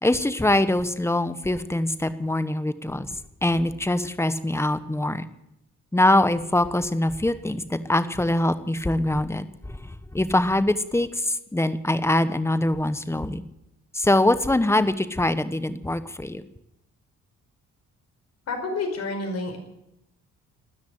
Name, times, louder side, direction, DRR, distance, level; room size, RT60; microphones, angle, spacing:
voice 1, 0.0-3.1 3.4-5.2 5.9-13.4 13.9-16.4, left 1 dB, 10° left, 12 dB, 1.2 m, -23 dB
voice 2, 18.5-19.6, left 3 dB, 55° left, 5 dB, 5.1 m, -29 dB
13.0 x 10.5 x 9.9 m, 0.84 s
cardioid pair, 90°, 30 cm